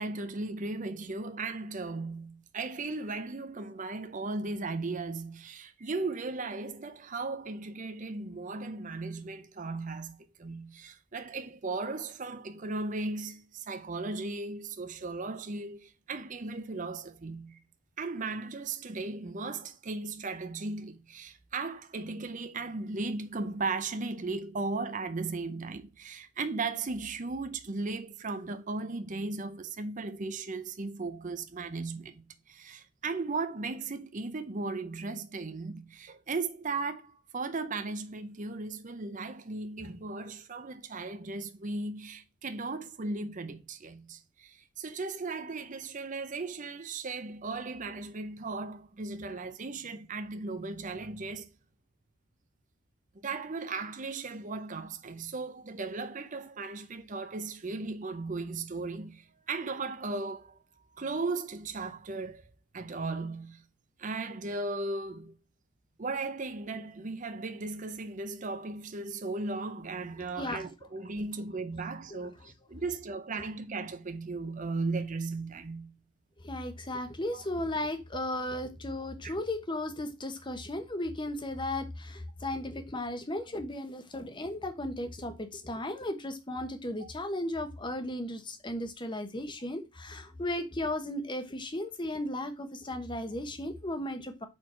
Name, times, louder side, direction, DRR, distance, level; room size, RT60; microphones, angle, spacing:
voice 1, 0.0-17.6 18.0-51.5 53.1-60.6 60.9-62.4 62.7-63.6 64.0-65.3 66.0-75.9 77.3-77.5 79.2-79.3 87.0-87.1, right 3 dB, 35° right, 0.6 m, -36 dB
voice 2, 76.4-94.5, left 1 dB, 20° left, 1.0 m, -35 dB
4.6 x 4.5 x 5.6 m
head